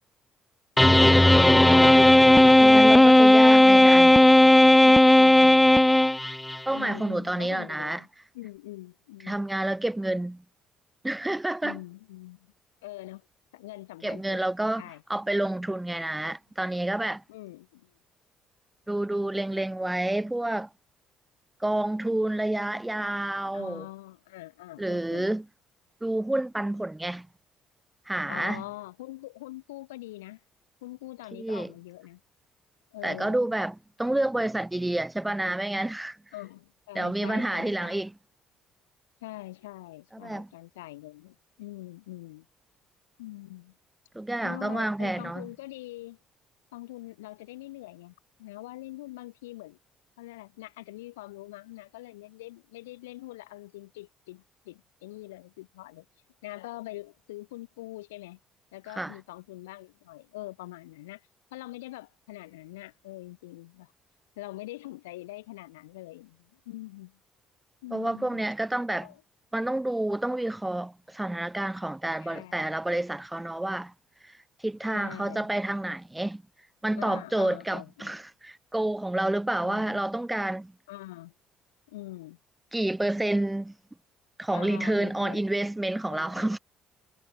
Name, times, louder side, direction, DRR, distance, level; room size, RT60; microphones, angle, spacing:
sound 1, 0.8-6.6, left 1 dB, 10° left, 0.6 m, -15 dB
voice 1, 2.6-4.1 5.4-5.5 6.7-8.0 9.3-10.4 11.0-11.8 14.0-14.8 15.1-17.2 18.9-20.7 21.6-23.9 24.8-25.4 26.0-27.3 28.1-28.6 31.4-31.7 33.0-36.2 37.0-38.1 40.2-40.5 44.1-45.5 59.0-59.1 67.9-69.1 69.5-73.9 74.2-74.3 74.6-76.4 76.8-80.7 82.7-83.7 84.4-86.6, right 1 dB, 10° right, 3.6 m, -29 dB
voice 2, 4.8-5.5 6.7-8.1 8.3-9.4 11.6-12.5 12.8-13.3 13.5-14.4 14.8-15.0 17.3-17.9 23.5-25.3 28.3-30.4 30.8-32.2 32.9-33.5 36.3-38.0 39.2-42.5 43.2-43.8 44.4-46.2 46.7-49.8 50.2-56.1 56.4-58.4 58.7-63.9 64.4-67.2 67.8-68.4 69.0-69.2 72.2-72.7 74.9-75.5 77.0-78.1 79.6-80.1 80.9-81.3 81.9-82.4 84.5-85.4 86.1-86.5, left 18 dB, 90° left, 1.8 m, -43 dB
hypercardioid pair, 60°, 0 cm